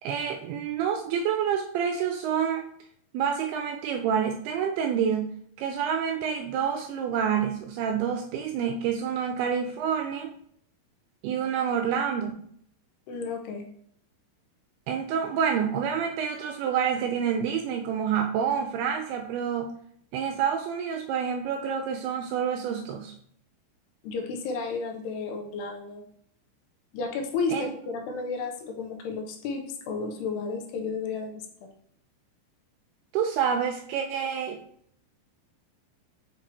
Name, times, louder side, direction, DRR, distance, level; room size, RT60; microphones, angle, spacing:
voice 1, 0.0-2.7 3.1-10.3 11.2-12.4 14.9-19.7 20.1-23.1 27.5-27.7 33.1-34.6, right 7 dB, 85° right, 4 dB, 2.3 m, -28 dB
voice 2, 13.1-13.7 24.0-26.0 26.9-31.7, left 4 dB, 80° left, 3 dB, 2.7 m, -32 dB
7.8 x 4.5 x 2.9 m, 0.64 s
omnidirectional pair, 4.9 m